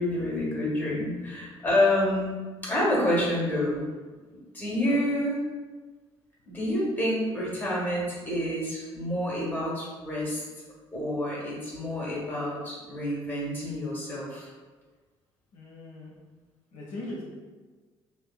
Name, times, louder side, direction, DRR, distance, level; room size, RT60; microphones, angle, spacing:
voice 1, 0.0-2.3 2.6-3.8 4.5-5.4 6.4-10.4 10.9-14.5, left 1 dB, 15° left, -5 dB, 1.0 m, -28 dB
voice 2, 15.5-16.1 16.7-17.2, left 2 dB, 55° left, -6 dB, 0.6 m, -39 dB
2.6 x 2.0 x 2.3 m, 1.4 s
figure-of-eight pair, 50°, 14 cm